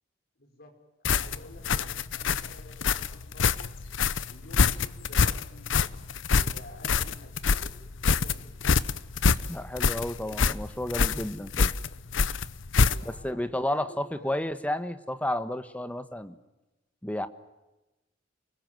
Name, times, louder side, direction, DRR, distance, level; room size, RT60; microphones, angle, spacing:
voice 1, 0.4-0.7 1.1-3.6 4.3-5.8 6.3-8.5 12.9-14.5, left 1 dB, 55° left, 4 dB, 5.6 m, -51 dB
sound 1, 1.0-13.3, left 5 dB, 70° left, 0.8 m, -25 dB
voice 2, 9.5-11.7 13.0-16.3 17.0-17.3, left 1 dB, 5° left, 11 dB, 1.3 m, -32 dB
29.5 x 21.0 x 7.8 m, 1.0 s
head